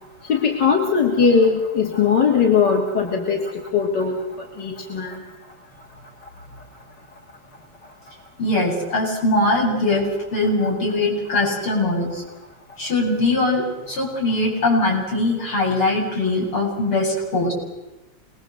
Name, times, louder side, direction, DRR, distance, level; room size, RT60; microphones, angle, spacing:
voice 1, 0.3-5.2, left 6 dB, 50° left, 1 dB, 3.2 m, -20 dB
voice 2, 8.4-12.2 12.8-17.5, left 2 dB, 70° left, -2 dB, 9.0 m, -21 dB
28.0 x 21.0 x 7.9 m, 0.99 s
omnidirectional pair, 2.4 m